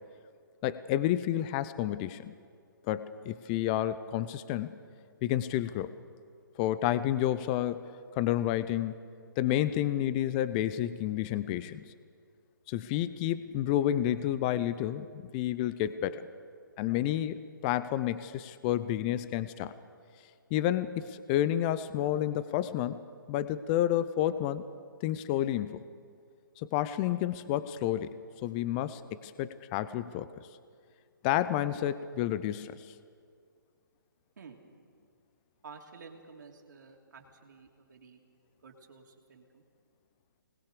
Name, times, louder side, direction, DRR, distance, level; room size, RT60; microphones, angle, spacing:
voice 1, 0.6-2.3 2.9-4.8 5.2-6.0 6.6-8.9 9.4-11.9 12.7-16.3 16.8-19.7 20.5-23.0 23.3-24.6 25.0-25.8 26.6-28.1 28.4-30.3 31.2-32.9, left 12 dB, 25° left, 14 dB, 0.6 m, -30 dB
voice 2, 35.6-38.2 38.6-39.6, right 5 dB, 60° right, 1 dB, 3.1 m, -51 dB
24.5 x 20.0 x 6.8 m, 2.1 s
figure-of-eight pair, 145°, 11 cm